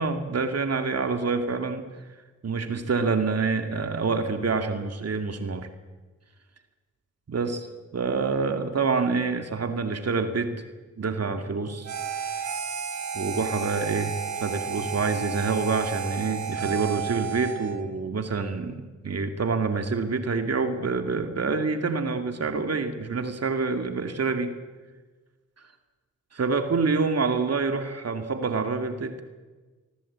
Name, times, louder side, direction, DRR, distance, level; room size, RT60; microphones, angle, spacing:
voice 1, 0.0-1.9 2.4-5.7 7.3-7.7 7.9-10.6 11.0-11.9 13.1-14.1 14.4-24.6 26.3-29.2, right 4 dB, 55° right, 7 dB, 2.5 m, -27 dB
Harmonica, 11.8-17.8, right 6 dB, 85° right, 3.1 m, -32 dB
24.0 x 19.0 x 8.7 m, 1.3 s
cardioid pair, 55°, 29 cm